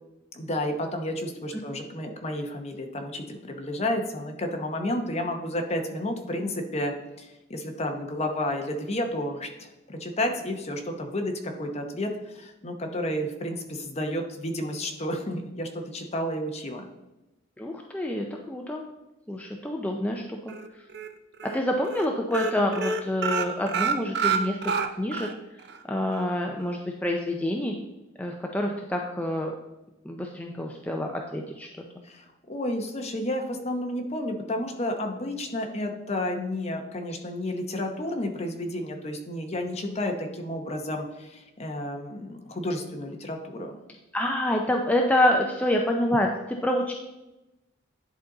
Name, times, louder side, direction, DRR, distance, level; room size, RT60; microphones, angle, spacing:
voice 1, 0.3-16.8 32.0-43.8, left 1 dB, 35° left, 4 dB, 0.9 m, -31 dB
voice 2, 17.6-18.8 19.3-20.5 21.4-25.3 25.9-27.7 28.2-29.5 30.0-31.7 44.1-46.9, left 1 dB, 5° left, 1 dB, 0.4 m, -27 dB
sound 1, 20.5-21.1 21.4-21.6 21.8-22.1 22.3-25.3 25.7-25.8 26.1-26.2, right 6 dB, 55° right, 0.6 m, -27 dB
10.5 x 4.0 x 3.9 m, 0.99 s
head